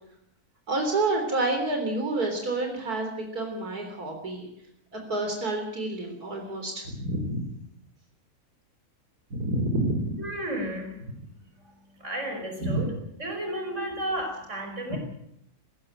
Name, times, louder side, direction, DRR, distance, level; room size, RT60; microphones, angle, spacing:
voice 1, 0.7-4.5 4.9-7.5 9.3-10.2 12.6-12.9 14.9-15.0, right 2 dB, 90° right, 3 dB, 4.3 m, -28 dB
voice 2, 10.2-11.0 12.0-12.9 13.2-15.0, right 1 dB, 50° right, 4 dB, 5.9 m, -32 dB
20.5 x 16.0 x 9.0 m, 0.73 s
omnidirectional pair, 1.6 m